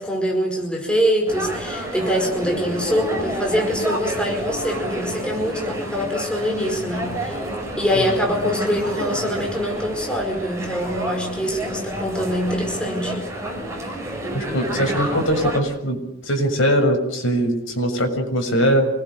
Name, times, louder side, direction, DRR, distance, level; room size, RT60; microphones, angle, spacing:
voice 1, 0.0-7.4 7.8-13.2, equal, 5° left, 1 dB, 4.9 m, -24 dB
sound 1, 1.3-15.6, right 1 dB, 15° right, 6.8 m, -29 dB
voice 2, 14.3-16.0 16.2-18.9, equal, 65° left, 4 dB, 6.9 m, -21 dB
27.5 x 21.0 x 8.0 m, 0.77 s
head